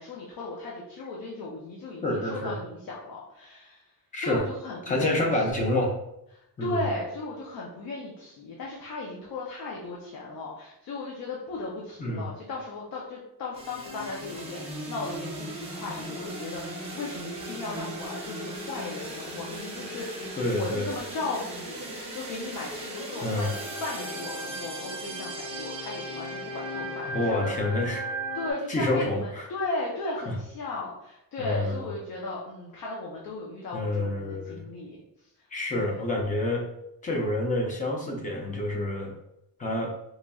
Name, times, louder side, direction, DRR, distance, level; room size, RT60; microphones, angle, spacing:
voice 1, 0.0-3.8 4.2-5.4 6.3-27.5 28.3-35.0 35.7-36.0, left 2 dB, 60° left, -3 dB, 0.7 m, -36 dB
voice 2, 2.0-2.6 4.1-4.5 4.9-5.9 6.6-6.8 12.0-12.3 20.4-20.9 23.2-23.5 27.1-28.1 28.7-29.5 30.3-30.4 31.4-31.9 33.7-34.7 35.5-36.7 37.0-39.1 39.6-39.9, left 1 dB, 20° left, 0 dB, 0.6 m, -28 dB
sound 1, 13.5-28.5, right 1 dB, 15° right, 0.8 m, -37 dB
4.0 x 3.0 x 2.3 m, 0.82 s
cardioid pair, 180°, 39 cm